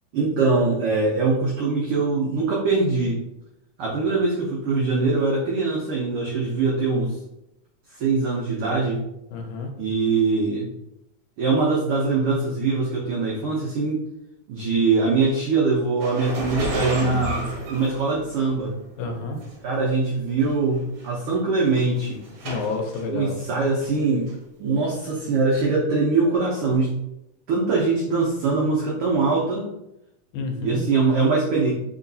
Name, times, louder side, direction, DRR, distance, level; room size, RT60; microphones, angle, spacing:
voice 1, 0.1-3.2 3.8-7.2 7.9-9.0 9.8-10.7 11.4-14.0 14.5-18.7 19.6-22.2 23.1-24.3 24.6-26.9 27.5-29.6 30.6-31.7, right 3 dB, 90° right, -4 dB, 1.2 m, -22 dB
voice 2, 9.3-9.7 19.0-19.4 22.4-23.4 30.3-30.8, left 3 dB, 85° left, 3 dB, 2.1 m, -29 dB
sound 1, 16.0-18.6 19.4-19.5 20.4-20.5 20.8-21.1 21.6-23.0 23.4-24.0 24.3-24.4 25.6-25.7, right 2 dB, 70° right, 1.7 m, -31 dB
4.4 x 2.9 x 2.7 m, 0.87 s
omnidirectional pair, 3.4 m